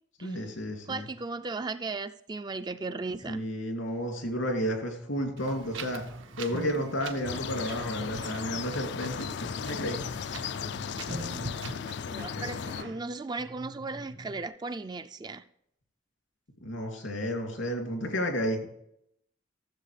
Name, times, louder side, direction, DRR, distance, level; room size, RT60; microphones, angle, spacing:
voice 1, 0.2-1.0 3.3-6.0 6.4-10.1 12.0-12.9 16.6-18.7, equal, 90° left, 2.6 m, -32 dB
voice 2, 0.9-3.4 12.0-15.4, right 3 dB, 20° right, 0.3 m, -36 dB
sound 1, 5.1-14.5, right 1 dB, 55° right, 0.9 m, -45 dB
Wind, 5.4-11.8, right 3 dB, 85° right, 1.0 m, -44 dB
sound 2, 7.2-12.8, left 7 dB, 60° left, 0.3 m, -36 dB
14.0 x 7.3 x 3.3 m
head